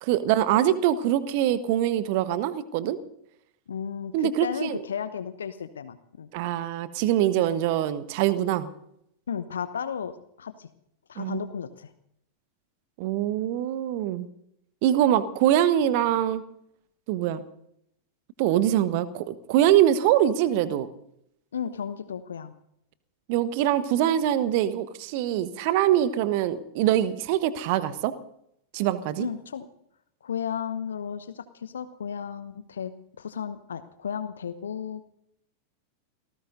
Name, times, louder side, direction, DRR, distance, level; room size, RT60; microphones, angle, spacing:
voice 1, 0.0-3.0 4.1-4.8 6.3-8.7 11.2-11.4 13.0-14.3 14.8-16.4 17.1-17.4 18.4-20.9 23.3-28.1 28.7-29.3, right 11 dB, 45° right, 13 dB, 1.3 m, -23 dB
voice 2, 3.7-6.3 9.3-10.7 11.1-11.9 21.5-22.5 29.2-29.7 30.2-32.9 33.2-35.1, left 7 dB, 65° left, 12 dB, 1.0 m, -34 dB
29.0 x 18.5 x 2.7 m, 0.75 s
figure-of-eight pair, 90°, 0 cm